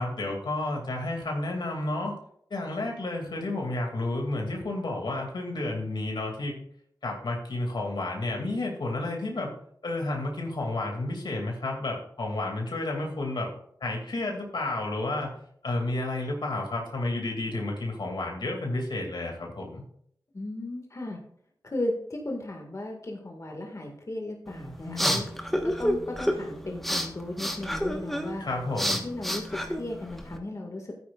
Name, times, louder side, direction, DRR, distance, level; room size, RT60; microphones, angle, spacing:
voice 1, 0.0-2.1 2.5-6.5 7.0-9.5 9.8-13.5 13.8-15.3 15.6-19.8 24.8-25.3 28.4-29.0, left 2 dB, 80° left, 0 dB, 2.5 m, -31 dB
voice 2, 20.3-21.2 21.6-25.3 25.6-28.4 28.8-30.9, left 1 dB, 45° left, 1 dB, 1.9 m, -35 dB
sound 1, 24.5-30.4, equal, 5° left, 1.3 m, -30 dB
13.5 x 9.5 x 2.5 m, 0.65 s
wide cardioid pair, 70°, 7 cm